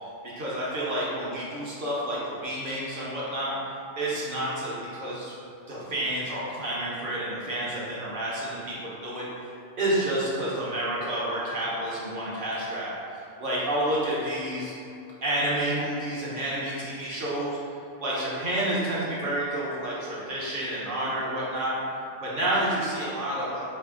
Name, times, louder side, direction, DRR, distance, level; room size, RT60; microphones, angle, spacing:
voice 1, 0.4-3.5 4.0-5.3 5.7-9.3 9.8-14.8 15.2-17.6 18.0-21.8 22.2-23.6, right 1 dB, 50° right, -7 dB, 0.9 m, -29 dB
3.3 x 2.6 x 3.7 m, 2.6 s
omnidirectional pair, 1.3 m